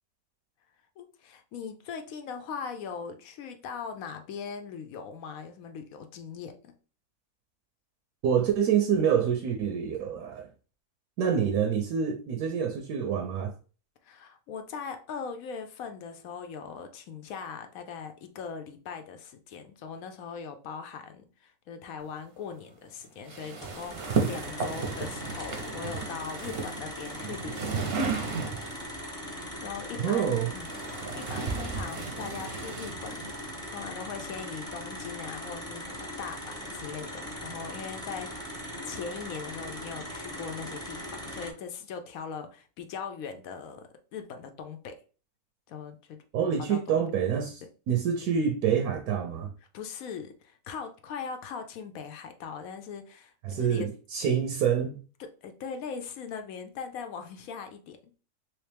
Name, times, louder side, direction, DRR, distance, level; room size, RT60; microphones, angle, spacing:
voice 1, 1.0-6.7 14.0-27.9 29.6-45.0 45.7-46.2 46.6-46.9 49.7-53.9 55.4-58.2, left 6 dB, 70° left, 1.0 m, -40 dB
voice 2, 8.2-10.5 11.2-13.5 30.0-30.5 46.3-49.5 53.4-55.0, right 8 dB, 75° right, 1.0 m, -27 dB
sound 1, 23.3-28.9 29.9-33.5, right 5 dB, 50° right, 0.7 m, -34 dB
sound 2, 23.6-41.5, equal, 5° left, 0.6 m, -40 dB
3.2 x 3.0 x 3.2 m
omnidirectional pair, 1.6 m